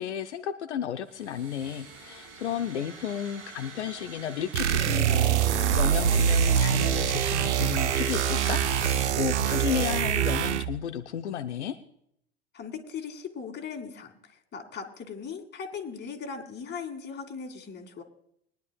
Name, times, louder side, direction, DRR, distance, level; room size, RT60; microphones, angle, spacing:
voice 1, 0.0-11.8, left 9 dB, 80° left, 7 dB, 0.8 m, -33 dB
sound 1, 1.1-9.1, right 4 dB, 45° right, 2.7 m, -41 dB
sound 2, 4.5-10.8, right 8 dB, 80° right, 0.7 m, -24 dB
voice 2, 12.5-18.0, left 6 dB, 30° left, 3 dB, 2.3 m, -39 dB
22.5 x 10.5 x 2.3 m, 0.72 s
hypercardioid pair, 75°, 34 cm